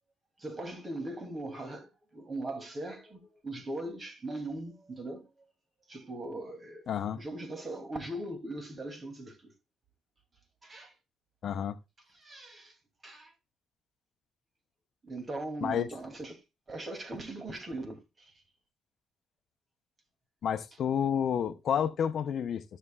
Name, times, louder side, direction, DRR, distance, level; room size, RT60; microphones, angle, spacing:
voice 1, 0.4-5.3 5.9-6.9 7.1-9.5 10.6-10.9 12.1-12.7 13.0-13.3 15.0-16.4 16.7-18.3, right 2 dB, 35° right, 2.5 m, -40 dB
voice 2, 6.9-7.2 11.4-11.8 15.6-15.9 20.4-22.6, left 8 dB, 60° left, 0.7 m, -30 dB
13.5 x 6.6 x 2.3 m
cardioid pair, 90°, 0 cm